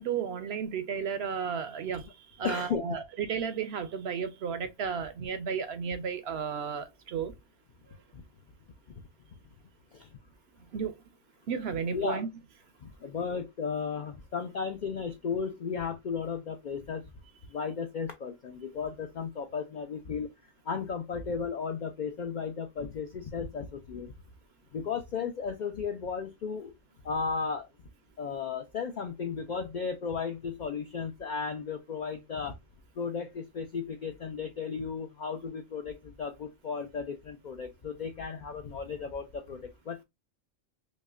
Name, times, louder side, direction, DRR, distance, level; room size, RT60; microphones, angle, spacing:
voice 1, 0.0-2.1 2.4-7.3 10.7-11.0 11.5-12.3, right 6 dB, 65° right, 0.7 m, -33 dB
voice 2, 2.4-3.0 8.1-8.2 9.9-10.1 11.9-12.2 12.8-17.1 17.5-20.3 20.6-24.1 24.7-26.7 27.0-27.7 28.2-32.6 33.0-40.0, left 6 dB, 75° left, 0.4 m, -35 dB
5.2 x 2.1 x 2.4 m
omnidirectional pair, 1.3 m